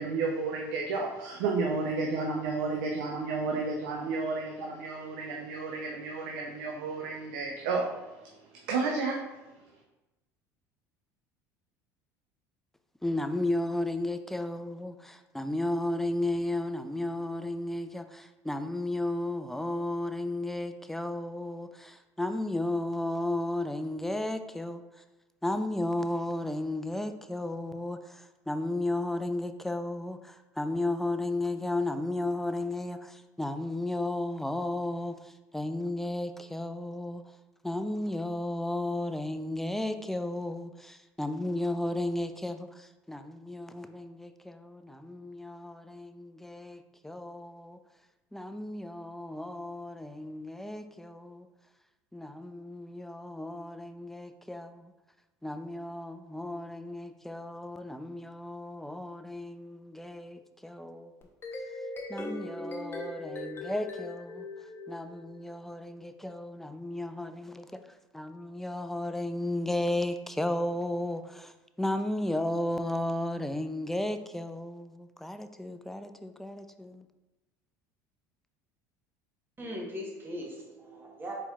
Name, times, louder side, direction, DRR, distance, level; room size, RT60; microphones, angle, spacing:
voice 1, 0.0-9.2, right 4 dB, 80° right, 0.6 m, -32 dB
voice 2, 13.0-25.0 25.4-37.2 37.6-47.8 48.3-51.5 52.1-54.9 55.4-61.1 62.1-64.5 64.9-67.8 68.1-77.1, left 1 dB, 5° left, 0.3 m, -34 dB
sound 1, 61.2-65.6, left 2 dB, 25° left, 0.8 m, -40 dB
voice 3, 79.6-81.3, equal, 20° right, 1.1 m, -39 dB
4.3 x 4.2 x 2.4 m
hypercardioid pair, 80°, 9 cm